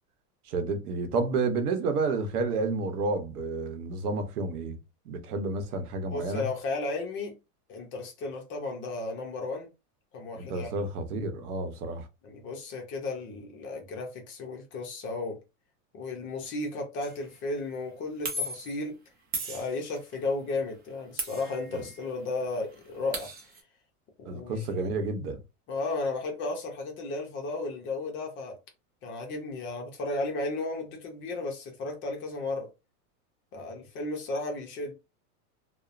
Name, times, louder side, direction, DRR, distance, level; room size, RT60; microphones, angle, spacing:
voice 1, 0.5-4.8 5.1-6.4 10.3-12.1 21.7-21.8 24.3-25.4, right 3 dB, 80° right, 0.9 m, -30 dB
voice 2, 6.1-7.3 7.7-9.7 10.1-10.7 12.2-15.4 15.9-19.0 19.5-23.3 24.2-24.9 25.7-28.6 29.0-32.7 33.5-34.9, left 3 dB, 25° left, 0.6 m, -34 dB
sound 1, 17.0-17.2 18.3-18.8 19.3-20.2 21.2-22.1 22.4-22.5 22.7-23.6, right 1 dB, 20° right, 0.5 m, -36 dB
2.9 x 2.0 x 2.5 m
supercardioid pair, 140°, 45 cm